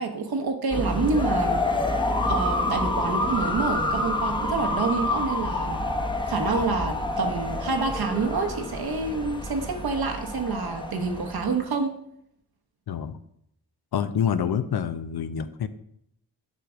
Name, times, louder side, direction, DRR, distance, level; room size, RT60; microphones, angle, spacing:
voice 1, 0.0-1.7 2.2-5.8 6.2-12.0, right 4 dB, 60° right, 4 dB, 1.1 m, -27 dB
sound 1, 0.7-11.6, left 2 dB, 10° left, 0.9 m, -28 dB
voice 2, 12.9-13.2 13.9-15.7, left 8 dB, 60° left, 11 dB, 0.6 m, -27 dB
7.5 x 3.3 x 5.1 m, 0.74 s
cardioid pair, 45°, 42 cm